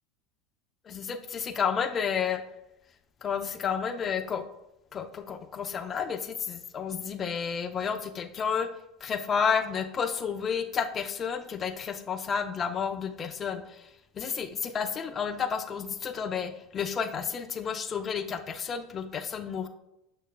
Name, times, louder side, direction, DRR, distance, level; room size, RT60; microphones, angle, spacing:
voice 1, 0.9-2.4 3.2-4.4 4.9-8.7 9.0-13.9 14.1-19.7, left 6 dB, 35° left, 8 dB, 0.6 m, -31 dB
6.4 x 6.3 x 2.3 m, 0.88 s
hypercardioid pair, 80°, 0 cm